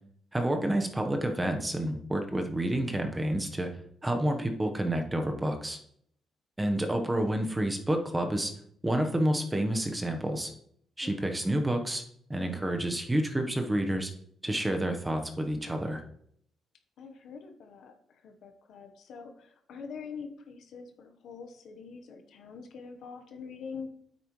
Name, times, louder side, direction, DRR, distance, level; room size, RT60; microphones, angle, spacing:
voice 1, 0.3-3.7 4.0-5.8 6.6-8.5 8.8-10.5 11.0-12.0 12.3-14.1 14.4-16.0, right 1 dB, 15° right, 4 dB, 1.2 m, -29 dB
voice 2, 11.0-11.4 17.0-23.9, left 5 dB, 70° left, 5 dB, 1.2 m, -45 dB
9.0 x 8.3 x 3.2 m, 0.68 s
cardioid pair, 90°, 0 cm